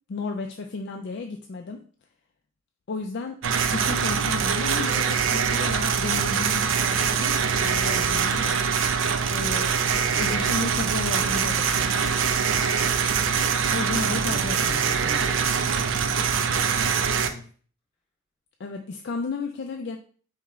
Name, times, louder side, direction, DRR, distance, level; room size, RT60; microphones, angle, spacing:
voice 1, 0.1-1.8 2.9-3.4 3.7-8.7 9.3-9.8 10.2-12.2 13.7-14.7 18.6-20.0, left 3 dB, 60° left, 3 dB, 0.4 m, -33 dB
sound 1, 3.4-17.3, right 6 dB, 70° right, 0.4 m, -24 dB
voice 2, 10.1-10.6 14.1-17.5, equal, 30° left, -2 dB, 2.1 m, -42 dB
4.7 x 3.5 x 3.1 m, 0.43 s
head